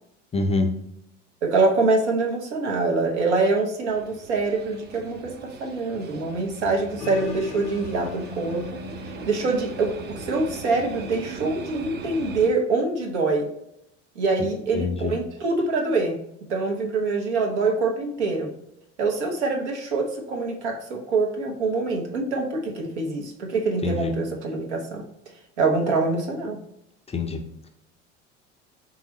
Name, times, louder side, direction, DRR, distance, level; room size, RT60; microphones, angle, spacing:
voice 1, 0.3-0.7 14.4-14.5 14.7-15.1 23.8-24.1 27.1-27.4, left 3 dB, 15° left, 5 dB, 0.5 m, -25 dB
voice 2, 1.4-8.6 9.3-13.5 14.2-16.2 16.5-18.5 19.0-25.0 25.6-26.6, right 3 dB, 70° right, 2 dB, 1.0 m, -25 dB
sound 1, 3.9-12.5, right 6 dB, 30° right, 0.6 m, -40 dB
sound 2, 7.0-12.3, left 6 dB, 55° left, 0.6 m, -40 dB
4.7 x 3.7 x 3.0 m, 0.80 s
figure-of-eight pair, 65°, 37 cm